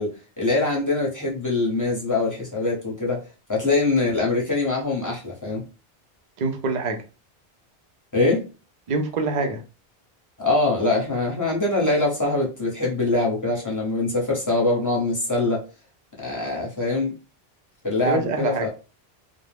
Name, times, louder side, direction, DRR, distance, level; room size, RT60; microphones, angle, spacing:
voice 1, 0.0-3.2 3.5-5.6 8.1-8.4 10.4-15.6 16.2-17.1 17.8-18.7, left 2 dB, 20° left, -3 dB, 0.8 m, -23 dB
voice 2, 6.4-7.0 8.9-9.6 18.0-18.7, right 3 dB, 50° right, 4 dB, 0.6 m, -25 dB
2.5 x 2.1 x 3.3 m, 0.33 s
omnidirectional pair, 1.1 m